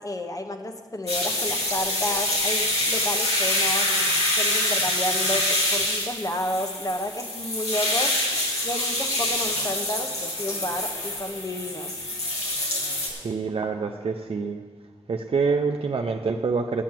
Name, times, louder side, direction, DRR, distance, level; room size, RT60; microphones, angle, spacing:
voice 1, 0.0-3.9 4.3-8.2 8.6-12.0, left 1 dB, 35° left, 5 dB, 1.1 m, -31 dB
sound 1, 1.1-13.1, left 1 dB, 85° left, 2.5 m, -26 dB
voice 2, 13.1-14.6 15.1-16.8, right 4 dB, 65° right, 4 dB, 0.6 m, -26 dB
9.2 x 8.5 x 7.5 m, 1.5 s
wide cardioid pair, 75°, 10 cm